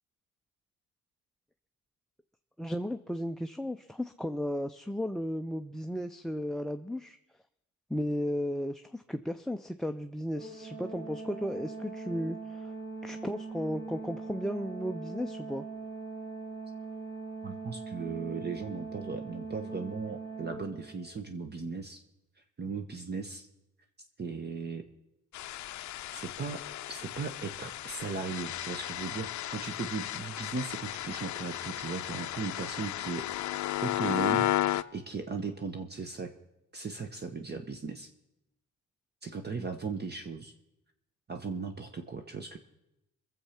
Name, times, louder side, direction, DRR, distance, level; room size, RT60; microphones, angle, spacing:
voice 1, 2.6-7.2 7.9-12.7 13.0-15.6, equal, ahead, 9 dB, 0.5 m, -34 dB
Organ, 10.3-21.2, right 4 dB, 55° right, 4.3 m, -41 dB
voice 2, 17.4-22.0 22.6-23.5 24.2-24.8 26.1-26.6 26.9-33.6 33.8-34.5 34.9-36.3 36.7-38.1 39.2-40.5 41.3-42.6, right 4 dB, 35° right, 6 dB, 1.1 m, -37 dB
sound 1, 25.3-34.8, left 14 dB, 70° left, 0.5 m, -34 dB
22.0 x 7.4 x 5.8 m, 0.89 s
cardioid pair, 90°, 30 cm